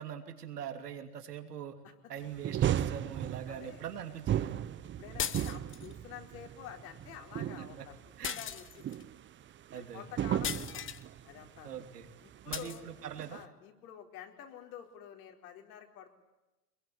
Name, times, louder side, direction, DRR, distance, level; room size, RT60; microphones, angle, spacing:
voice 1, 0.0-1.8 2.1-4.5 7.4-7.7 8.2-8.4 9.7-10.1 11.6-12.1 12.5-13.4, right 9 dB, 90° right, 6 dB, 3.1 m, -42 dB
sound 1, 2.2-13.4, right 10 dB, 25° right, 0.9 m, -36 dB
voice 2, 3.5-3.8 5.0-7.9 8.3-9.0 9.7-10.8 11.2-11.8 12.2-12.8 13.3-16.1, left 9 dB, 65° left, 3 dB, 4.6 m, -49 dB
sound 2, 5.2-5.9 8.2-9.0 10.4-11.0 12.5-12.8, left 9 dB, 25° left, 1.2 m, -37 dB
23.0 x 22.0 x 9.9 m, 1.0 s
hypercardioid pair, 105°, 46 cm